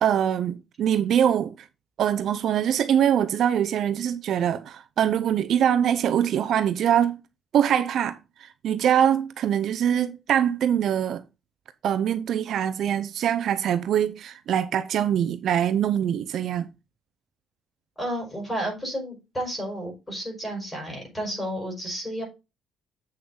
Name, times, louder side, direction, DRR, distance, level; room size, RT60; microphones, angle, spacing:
voice 1, 0.0-1.5 2.0-7.2 7.5-11.2 11.8-16.7, right 9 dB, 55° right, 0.7 m, -23 dB
voice 2, 18.0-22.2, equal, 15° left, 5.1 m, -32 dB
8.1 x 6.5 x 3.9 m
cardioid pair, 155°, 0 cm